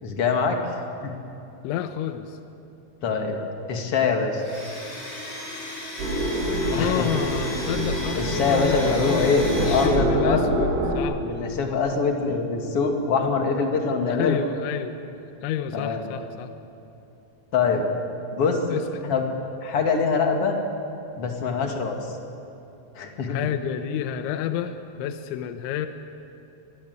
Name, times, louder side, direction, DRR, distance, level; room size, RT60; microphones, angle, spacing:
voice 1, 0.0-0.6 1.0-1.1 3.0-3.4 3.7-4.4 6.8-7.1 8.1-10.5 11.2-14.4 15.7-16.1 17.5-17.9 18.3-19.2 19.6-20.6 21.2-22.2 23.0-23.4, left 4 dB, 50° left, 3 dB, 1.9 m, -24 dB
voice 2, 1.6-2.4 6.7-11.2 14.1-15.0 15.4-16.5 18.7-18.8 23.3-25.9, left 10 dB, 80° left, 8 dB, 3.1 m, -29 dB
Domestic sounds home sounds, 4.3-9.9, left 2 dB, 20° left, 3.9 m, -35 dB
sound 1, 6.0-11.0, right 1 dB, 70° right, 5.9 m, -26 dB
26.0 x 20.5 x 8.1 m, 2.9 s
omnidirectional pair, 5.7 m